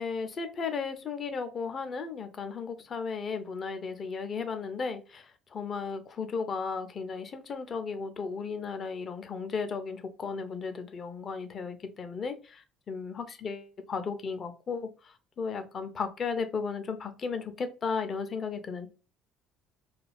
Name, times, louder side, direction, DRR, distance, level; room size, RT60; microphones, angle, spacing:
voice 1, 0.0-18.9, left 5 dB, 45° left, 9 dB, 0.5 m, -35 dB
2.4 x 2.3 x 3.3 m, 0.34 s
hypercardioid pair, 55°, 0 cm